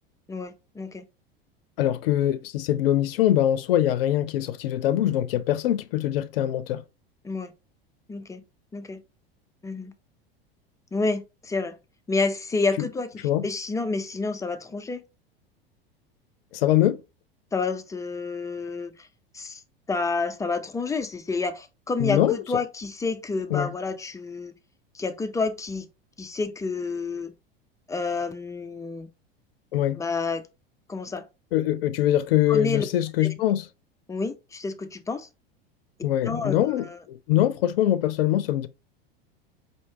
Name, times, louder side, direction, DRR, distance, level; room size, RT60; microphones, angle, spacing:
voice 1, 0.3-1.0 7.2-7.5 8.1-8.4 8.7-9.0 9.6-9.9 10.9-11.8 12.1-13.1 13.4-15.0 17.5-18.9 19.3-19.6 19.9-24.5 24.9-25.9 26.2-27.3 27.9-29.1 30.0-30.4 30.9-31.3 32.5-32.9 34.1-35.3 36.2-36.6, left 3 dB, 10° left, 0.4 m, -29 dB
voice 2, 1.8-6.8 12.8-12.9 13.2-13.5 16.5-17.0 22.0-22.4 23.5-23.7 29.7-30.0 31.5-33.7 36.0-38.7, left 12 dB, 70° left, 0.5 m, -23 dB
4.5 x 2.8 x 2.7 m
hypercardioid pair, 85°, 30 cm